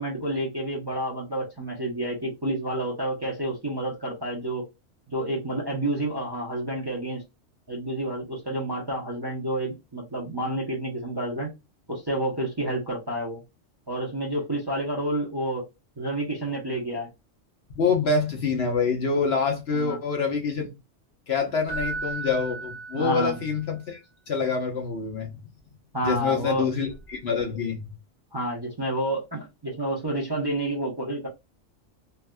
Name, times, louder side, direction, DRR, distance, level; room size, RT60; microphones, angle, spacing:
voice 1, 0.0-4.6 5.1-7.2 7.7-11.5 11.9-13.4 13.9-15.6 16.0-17.1 19.7-20.0 22.9-23.4 25.9-26.7 28.3-31.3, right 1 dB, 25° right, 0.7 m, -29 dB
voice 2, 17.7-20.7 21.3-24.0 24.3-25.3 26.0-27.8, left 5 dB, 55° left, 1.0 m, -26 dB
Keyboard (musical), 21.7-23.6 26.9-27.0, right 4 dB, 75° left, 1.7 m, -35 dB
3.3 x 2.6 x 2.2 m
omnidirectional pair, 1.3 m